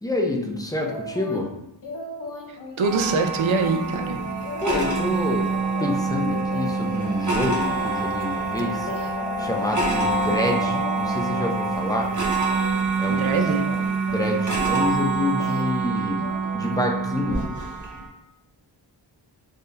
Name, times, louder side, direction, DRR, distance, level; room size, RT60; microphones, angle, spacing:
voice 1, 0.0-1.5 4.6-5.5 5.8-8.9 9.4-12.1 13.0-13.5 14.1-16.3 16.5-17.5, left 2 dB, 10° left, 1 dB, 0.5 m, -27 dB
sound 1, 0.8-1.5 1.8-9.8 10.2-11.5 11.7-12.2 12.5-15.9 16.2-16.8 17.2-17.4, left 1 dB, 45° left, 0.7 m, -37 dB
sound 2, 2.8-18.1, right 4 dB, 40° right, 1.1 m, -26 dB
voice 2, 2.8-4.2 13.1-13.6, right 4 dB, 80° right, 5 dB, 0.6 m, -23 dB
sound 3, 5.5-11.8, left 6 dB, 70° left, 0.9 m, -33 dB
3.8 x 2.7 x 3.3 m, 0.86 s
wide cardioid pair, 105°, 47 cm